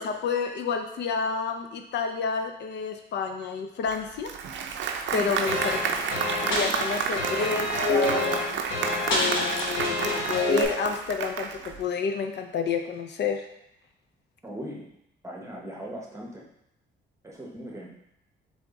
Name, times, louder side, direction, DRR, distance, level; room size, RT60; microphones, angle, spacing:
voice 1, 0.0-4.3 5.1-5.8 6.4-8.4 9.1-13.4, left 5 dB, 60° left, 6 dB, 0.5 m, -29 dB
Applause, 3.9-11.8, right 6 dB, 70° right, 0.5 m, -31 dB
sound 1, 5.5-10.6, left 2 dB, 80° left, 1.1 m, -27 dB
voice 2, 14.4-14.9 15.2-16.5 17.2-17.9, equal, 15° right, -2 dB, 0.9 m, -39 dB
3.5 x 3.5 x 4.0 m, 0.80 s
cardioid pair, 90°, 20 cm